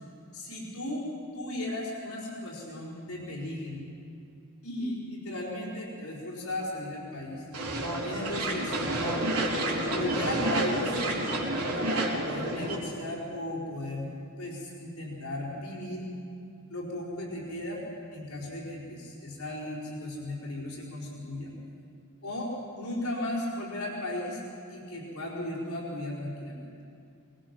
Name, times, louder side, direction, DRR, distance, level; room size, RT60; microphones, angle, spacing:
voice 1, 0.3-1.1 1.3-3.8 4.6-7.4 8.0-8.9 9.9-11.0 11.7-14.1 14.4-16.1 16.7-17.8 18.1-21.5 22.2-24.4 24.7-26.7, left 1 dB, 75° left, -5 dB, 4.7 m, -36 dB
sound 1, 7.5-12.8, right 1 dB, 80° right, 3.7 m, -29 dB
23.5 x 20.5 x 6.0 m, 2.5 s
head